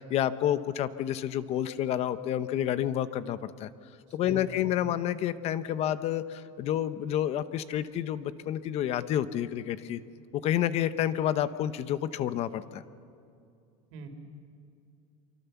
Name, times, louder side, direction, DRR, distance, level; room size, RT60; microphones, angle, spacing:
voice 1, 0.0-3.7 4.1-10.0 10.3-12.8, left 11 dB, 40° left, 13 dB, 0.8 m, -29 dB
voice 2, 4.2-4.9 13.9-14.1, right 6 dB, 85° right, 5 dB, 3.9 m, -43 dB
25.5 x 24.5 x 7.1 m, 2.5 s
cardioid pair, 160°, 16 cm